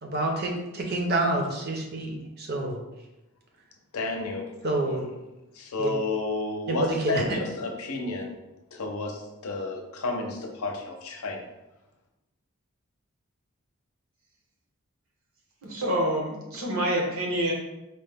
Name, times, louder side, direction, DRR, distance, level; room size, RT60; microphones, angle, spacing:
voice 1, 0.0-2.8 4.6-5.1 5.8-5.9 6.7-7.2, right 2 dB, 45° right, 1 dB, 0.6 m, -28 dB
voice 2, 3.9-4.5 4.9-5.0 5.5-8.4 8.7-11.4, left 3 dB, 80° left, 3 dB, 0.6 m, -31 dB
voice 3, 15.6-17.5, right 1 dB, 70° right, -1 dB, 0.9 m, -27 dB
4.2 x 2.1 x 3.4 m, 0.98 s
head